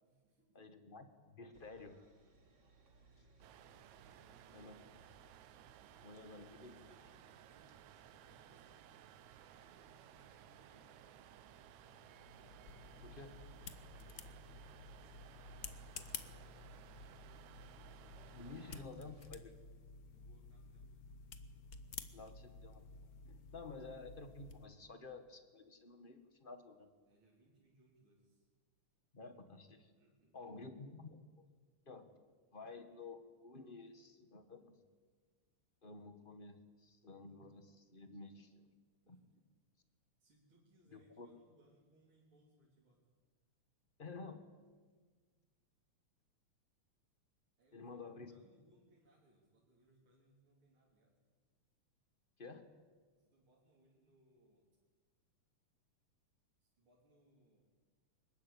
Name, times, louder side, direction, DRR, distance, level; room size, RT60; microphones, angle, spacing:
voice 1, 0.0-0.7 4.0-5.0 6.6-7.8 8.1-8.9 9.2-11.4 13.8-14.5 14.9-17.7 20.1-20.9 27.1-28.5 30.0-30.6 39.0-39.2 40.2-43.0 47.6-48.0 48.3-51.1 53.2-54.7 56.6-57.7, right 1 dB, 45° right, -4 dB, 4.3 m, -71 dB
voice 2, 0.5-2.0 4.5-4.8 6.0-6.7 13.0-13.4 18.3-19.6 22.1-22.9 23.2-26.9 29.1-29.9 30.3-31.5 31.8-32.1 32.5-34.8 35.8-38.7 39.1-39.2 40.9-41.3 44.0-44.5 47.7-48.3 52.4-52.7, left 3 dB, 25° left, 8 dB, 1.1 m, -52 dB
sound 1, 1.5-19.3, right 2 dB, 30° right, 1.9 m, -66 dB
sound 2, 3.4-18.9, right 12 dB, 75° right, 2.0 m, -60 dB
sound 3, 11.9-24.7, left 5 dB, 80° left, 0.8 m, -53 dB
23.5 x 20.5 x 8.6 m, 1.5 s
omnidirectional pair, 3.5 m